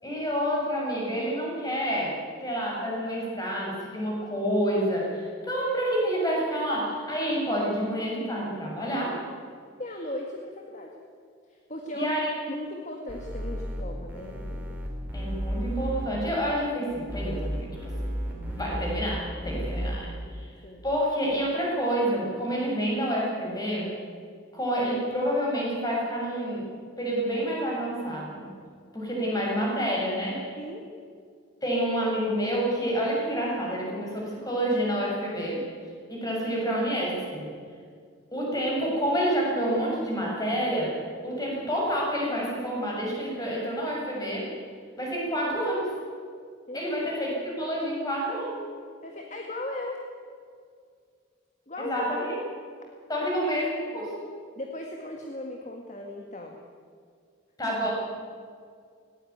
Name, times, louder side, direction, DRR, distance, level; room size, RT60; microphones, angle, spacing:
voice 1, 0.0-2.2 2.4-9.2 11.9-12.4 15.1-20.6 20.8-23.9 24.5-26.6 27.0-28.5 28.9-30.4 31.6-35.7 36.1-37.5 38.3-40.9 41.2-44.5 45.0-45.9 46.7-48.6 51.8-52.3 53.1-54.3 57.6-57.9, equal, 20° left, -3 dB, 7.0 m, -28 dB
voice 2, 9.8-10.9 11.5-12.2 12.5-14.7 20.2-20.3 20.6-20.8 30.6-30.9 46.7-46.8 49.0-50.0 51.7-52.1 54.6-56.6, left 1 dB, 35° left, 1 dB, 1.9 m, -37 dB
sound 1, 13.1-13.8 14.1-16.1 17.1-19.1 19.4-20.0, equal, 10° right, 4.4 m, -33 dB
19.0 x 18.0 x 9.5 m, 2.2 s
head